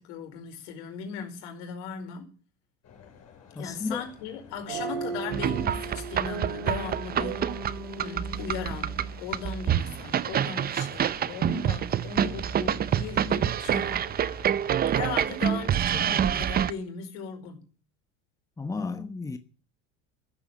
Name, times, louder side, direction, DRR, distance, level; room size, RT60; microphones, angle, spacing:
voice 1, 0.0-2.3 3.6-7.5 8.0-14.4 14.9-17.6, left 7 dB, 70° left, 5.1 m, -38 dB
sound 1, 2.8-14.7, left 7 dB, 40° left, 6.3 m, -52 dB
voice 2, 3.5-4.0 18.6-19.4, left 4 dB, 10° left, 1.1 m, -33 dB
sound 2, 4.7-10.1, right 4 dB, 80° right, 3.4 m, -38 dB
sound 3, 5.3-16.7, right 9 dB, 25° right, 0.6 m, -27 dB
15.0 x 8.2 x 9.1 m
supercardioid pair, 115°, 37 cm